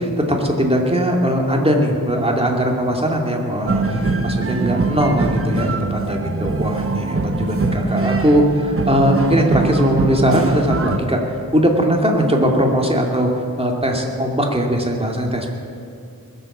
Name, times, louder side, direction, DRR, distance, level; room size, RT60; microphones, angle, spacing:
voice 1, 0.0-11.2 11.5-13.3 13.6-15.5, equal, 15° right, 0 dB, 2.5 m, -19 dB
sound 1, 3.7-11.0, right 3 dB, 40° right, 1.0 m, -22 dB
21.0 x 8.1 x 7.3 m, 2.4 s
wide cardioid pair, 50°, 35 cm